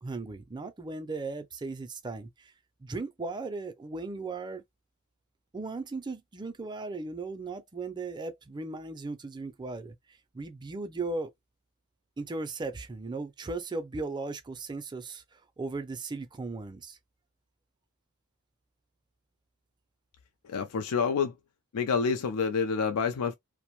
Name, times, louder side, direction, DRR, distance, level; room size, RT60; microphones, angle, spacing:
voice 1, 0.0-2.5 2.8-4.6 5.5-9.9 10.3-11.3 12.2-17.0, right 3 dB, 20° right, 0.4 m, -37 dB
voice 2, 20.4-21.4 21.7-23.3, left 5 dB, 80° left, 0.4 m, -28 dB
2.5 x 2.1 x 2.9 m
head